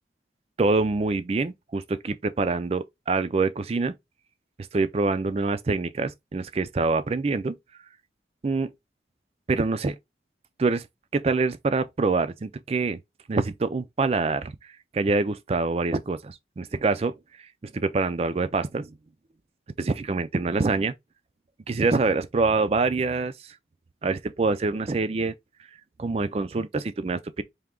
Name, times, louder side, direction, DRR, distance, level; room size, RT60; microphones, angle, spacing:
voice 1, 0.6-4.0 4.7-7.5 8.4-8.7 9.5-9.9 10.6-10.9 11.1-13.0 13.3-19.0 19.8-20.9 21.7-23.6 24.0-25.3 26.0-27.4, right 3 dB, 35° right, 0.4 m, -25 dB
3.4 x 2.8 x 3.7 m
head